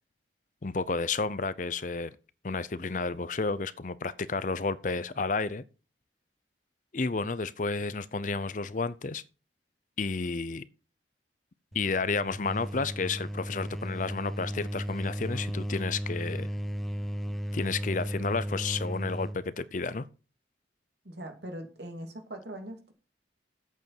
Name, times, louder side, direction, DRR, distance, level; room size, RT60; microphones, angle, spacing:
voice 1, 0.6-2.1 2.4-5.6 6.9-9.2 10.0-10.6 11.7-16.5 17.5-20.1, left 4 dB, 45° left, 0.6 m, -31 dB
sound 1, 11.7-19.5, equal, ahead, 0.6 m, -35 dB
voice 2, 21.0-22.9, right 1 dB, 65° right, 2.6 m, -41 dB
8.3 x 7.0 x 7.7 m
head